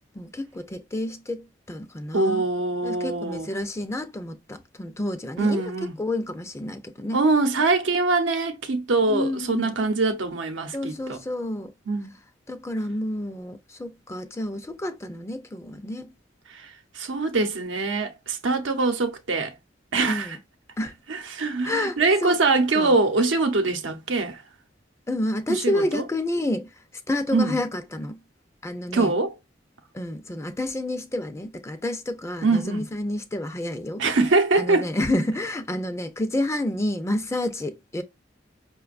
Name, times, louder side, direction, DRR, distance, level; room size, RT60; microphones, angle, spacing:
voice 1, 0.2-2.4 2.8-5.6 6.0-7.2 9.1-9.7 10.7-11.7 12.5-16.1 20.1-20.4 20.8-20.9 21.6-22.4 22.7-22.9 25.1-26.7 27.1-28.2 28.6-29.1 29.9-34.0 34.6-38.0, left 1 dB, 15° left, 0.4 m, -29 dB
voice 2, 2.1-3.5 5.4-5.9 7.1-11.2 11.9-12.1 17.0-19.5 19.9-20.4 21.1-24.4 25.5-26.0 27.3-27.6 28.9-29.3 32.4-32.8 34.0-34.9, right 3 dB, 90° right, 0.8 m, -23 dB
5.2 x 2.2 x 2.4 m
head